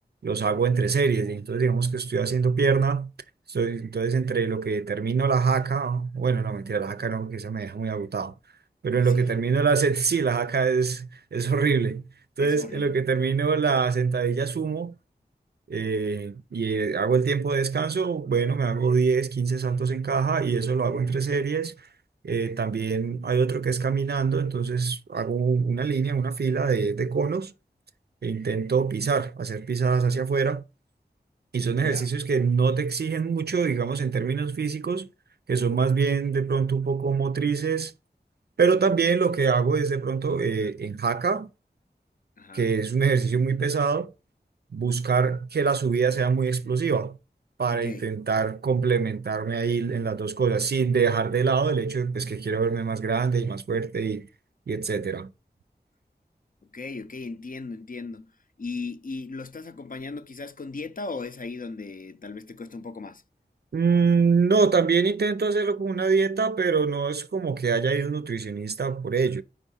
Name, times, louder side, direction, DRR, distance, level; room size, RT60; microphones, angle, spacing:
voice 1, 0.2-3.1 3.5-8.3 8.8-12.0 12.4-15.0 15.7-21.9 22.2-27.5 28.2-30.6 31.5-35.1 35.5-37.9 38.6-41.5 42.5-44.1 44.7-47.2 47.6-54.3 54.7-55.3 63.7-69.4, right 5 dB, 65° right, 0.5 m, -24 dB
voice 2, 8.9-9.2 12.4-12.9 31.8-32.1 42.4-42.7 47.7-48.0 56.7-58.3 58.6-63.2, left 3 dB, 50° left, 0.5 m, -37 dB
4.8 x 3.6 x 5.5 m
wide cardioid pair, 40°, 18 cm